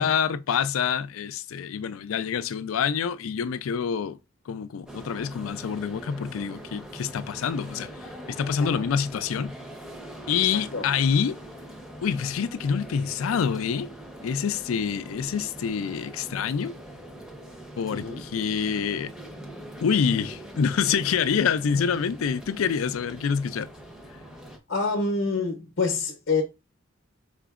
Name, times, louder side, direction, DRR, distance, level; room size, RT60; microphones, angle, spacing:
voice 1, 0.0-4.2 4.5-7.9 8.3-9.5 10.3-11.4 12.0-13.9 14.2-16.8 17.8-19.1 19.8-23.7, left 7 dB, 85° left, 0.4 m, -26 dB
sound 1, 4.9-24.6, right 1 dB, 5° right, 0.6 m, -43 dB
voice 2, 10.5-10.9 17.9-18.2 24.7-26.4, left 4 dB, 55° left, 0.8 m, -27 dB
5.0 x 3.7 x 2.4 m
head